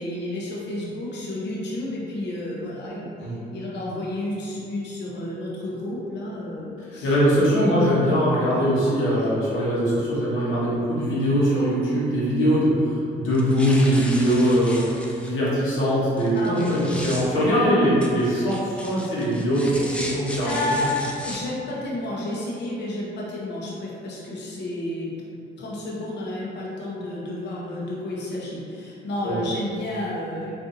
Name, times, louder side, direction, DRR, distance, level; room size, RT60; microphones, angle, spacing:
voice 1, 0.0-7.1 7.6-7.7 16.3-17.0 20.4-21.0 21.2-25.1 25.6-30.5, left 1 dB, 60° left, -5 dB, 0.7 m, -31 dB
voice 2, 7.0-12.9 13.2-14.8 15.2-20.9 29.2-29.4, equal, 80° left, -8 dB, 1.1 m, -21 dB
sound 1, 13.3-15.3 16.2-17.3 18.0-21.4, left 1 dB, 5° left, 0.4 m, -36 dB
3.9 x 2.6 x 2.6 m, 2.6 s
cardioid pair, 90°, 20 cm